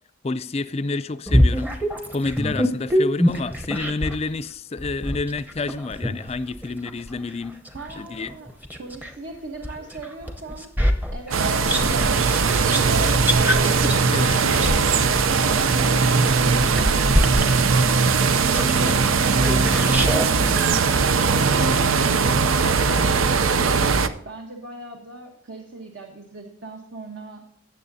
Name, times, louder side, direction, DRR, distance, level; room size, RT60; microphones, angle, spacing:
voice 1, 0.2-1.7 2.1-7.6 8.0-8.3 14.1-14.4, left 3 dB, 30° left, 0.4 m, -29 dB
sound 1, 1.3-4.2 4.8-9.1 9.6-20.3, equal, 10° right, 0.8 m, -25 dB
voice 2, 7.7-8.5 8.8-10.7 11.1-13.4 14.1-17.1 17.9-19.4 20.0-20.7 21.0-23.8 24.2-27.4, right 3 dB, 60° right, 1.2 m, -39 dB
sound 2, 11.3-24.1, right 4 dB, 85° right, 0.6 m, -19 dB
17.0 x 7.1 x 2.7 m
head